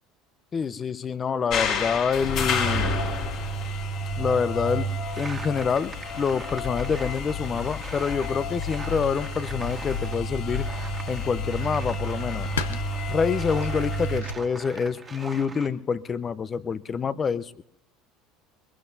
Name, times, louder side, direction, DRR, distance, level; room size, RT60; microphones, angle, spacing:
voice 1, 0.5-3.0 4.2-4.9 5.2-10.7 11.1-12.8 13.1-17.6, left 6 dB, 35° left, 15 dB, 0.6 m, -27 dB
sound 1, 1.5-14.2, left 2 dB, 60° left, 3.9 m, -30 dB
sound 2, 5.1-10.2 10.5-15.7, right 4 dB, 25° right, 1.7 m, -43 dB
sound 3, 9.9-15.2, left 7 dB, 90° left, 0.7 m, -40 dB
22.5 x 21.5 x 2.7 m, 0.79 s
hypercardioid pair, 75°, 0 cm